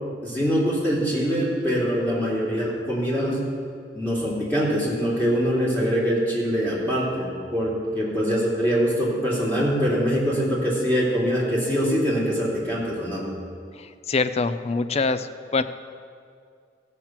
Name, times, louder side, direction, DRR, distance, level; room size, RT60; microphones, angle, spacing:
voice 1, 0.2-3.4 3.9-13.3, equal, 10° left, -6 dB, 3.0 m, -23 dB
voice 2, 13.8-15.6, left 4 dB, 35° left, 12 dB, 0.4 m, -25 dB
15.0 x 5.8 x 7.5 m, 2.3 s
head